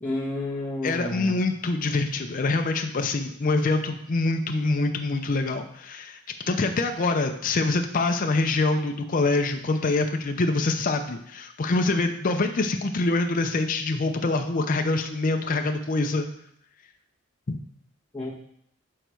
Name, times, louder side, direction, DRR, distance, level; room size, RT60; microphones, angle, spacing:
voice 1, 0.0-1.4 18.1-18.3, left 1 dB, 10° left, -6 dB, 1.5 m, -30 dB
voice 2, 0.8-6.2 6.5-16.3 17.5-17.6, left 3 dB, 40° left, 5 dB, 0.5 m, -25 dB
6.5 x 4.0 x 4.5 m, 0.70 s
head